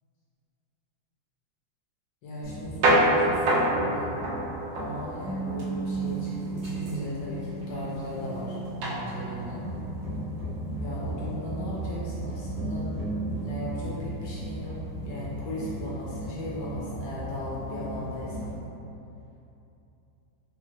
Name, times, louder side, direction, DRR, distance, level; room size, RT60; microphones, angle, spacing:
voice 1, 2.2-4.1 4.7-9.7 10.8-12.9 13.4-14.8 15.0-18.5, left 1 dB, 70° left, -7 dB, 1.3 m, -37 dB
sound 1, 2.4-18.6, right 1 dB, 80° right, 1.4 m, -30 dB
3.7 x 2.5 x 3.1 m, 2.8 s
omnidirectional pair, 2.1 m